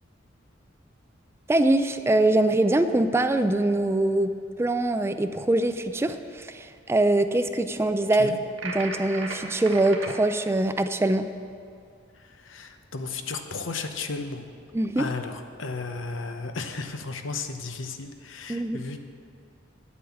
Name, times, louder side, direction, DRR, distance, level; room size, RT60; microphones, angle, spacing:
voice 1, 1.5-4.3 4.6-8.3 8.6-11.3 14.7-15.1 18.5-18.8, right 2 dB, 15° right, 9 dB, 0.3 m, -23 dB
sound 1, 8.6-10.2, right 3 dB, 80° right, 1.5 m, -35 dB
voice 2, 12.1-14.4 15.0-19.0, left 4 dB, 75° left, 7 dB, 0.9 m, -34 dB
9.5 x 8.4 x 7.1 m, 2.4 s
head